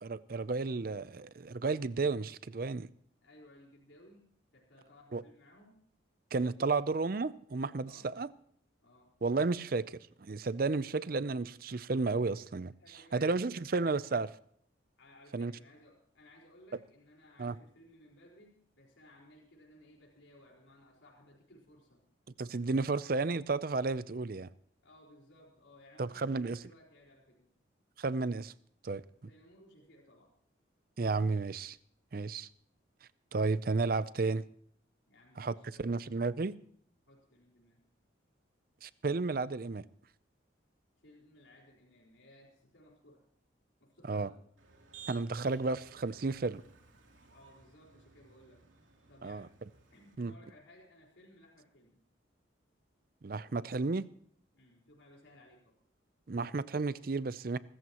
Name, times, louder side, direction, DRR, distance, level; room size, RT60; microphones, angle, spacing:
voice 1, 0.0-2.9 5.1-5.2 6.3-8.3 9.2-12.7 13.1-14.3 15.3-15.5 17.4-17.5 22.4-24.5 26.0-26.6 28.0-28.5 28.8-29.0 31.0-31.8 32.1-32.5 33.3-34.4 35.4-36.6 38.8-39.8 44.1-44.3 45.1-46.6 49.2-49.5 50.2-50.3 53.2-54.1 56.3-57.6, right 3 dB, 45° right, 0.5 m, -32 dB
voice 2, 3.2-5.8 7.8-8.1 8.8-9.2 12.1-12.4 12.8-13.7 15.0-22.0 24.8-27.5 29.0-30.3 35.1-35.9 37.1-37.9 41.0-43.3 43.8-44.5 47.3-48.7 49.1-49.5 49.9-52.0 54.5-55.7, left 1 dB, 75° left, 4.5 m, -60 dB
Motor vehicle (road), 44.6-50.1, right 6 dB, 85° right, 3.1 m, -57 dB
24.5 x 14.0 x 3.0 m
head